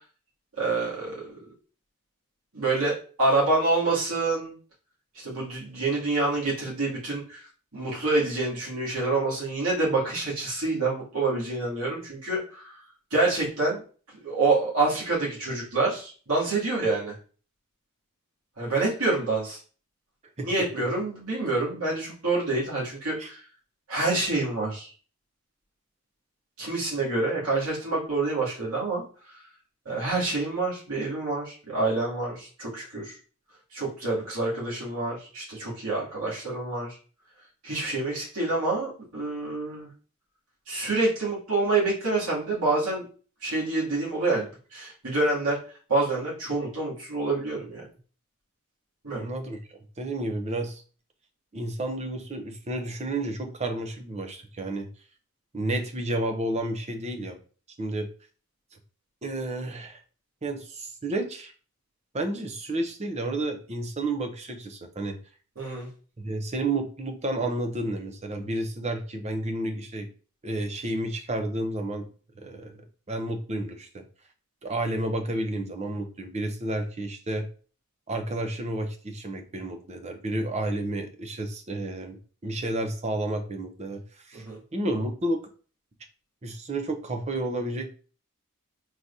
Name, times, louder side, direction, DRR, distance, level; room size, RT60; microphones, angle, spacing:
voice 1, 0.6-1.4 2.5-4.5 5.1-12.7 13.1-13.8 14.1-17.2 18.6-19.6 20.4-23.4 23.9-24.9 26.6-29.0 29.9-33.1 33.7-37.0 37.6-39.9 40.7-43.0 43.4-45.6 45.9-47.9 49.0-49.2 65.6-65.9 84.3-84.6, right 3 dB, 80° right, -5 dB, 2.4 m, -27 dB
voice 2, 49.1-50.8 51.5-54.9 55.5-57.4 57.8-58.1 59.2-60.0 60.4-61.5 62.1-65.2 66.2-70.1 70.4-72.1 72.4-74.0 74.6-77.5 78.1-82.2 82.4-84.4 84.7-85.4 86.4-87.9, right 1 dB, 30° right, 5 dB, 0.7 m, -31 dB
4.6 x 3.9 x 2.6 m, 0.40 s
head